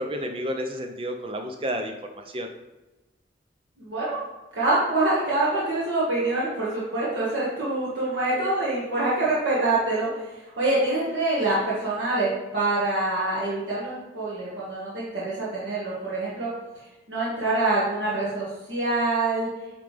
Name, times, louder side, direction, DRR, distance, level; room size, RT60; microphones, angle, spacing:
voice 1, 0.0-2.5, equal, 30° right, 5 dB, 0.5 m, -31 dB
voice 2, 3.8-4.2 4.5-10.2 10.6-16.5 17.1-19.5, right 2 dB, 85° right, -8 dB, 1.5 m, -25 dB
8.6 x 3.3 x 3.3 m, 1.1 s
head